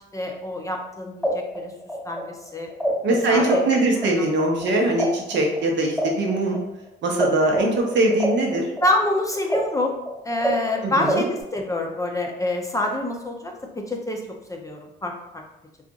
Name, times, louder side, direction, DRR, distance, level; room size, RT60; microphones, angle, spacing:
voice 1, 0.1-1.7 2.0-2.7 3.3-3.6 4.2-4.3 8.8-10.0 10.2-15.4, left 1 dB, 15° left, 1 dB, 0.5 m, -26 dB
sound 1, 0.8-0.9 1.2-3.7 4.0-7.3 7.5-11.4, equal, ahead, 1.2 m, -27 dB
voice 2, 3.0-6.6 7.0-8.7 10.8-11.3, right 2 dB, 65° right, 1 dB, 0.8 m, -22 dB
2.5 x 2.4 x 3.8 m, 0.87 s
cardioid pair, 90°, 20 cm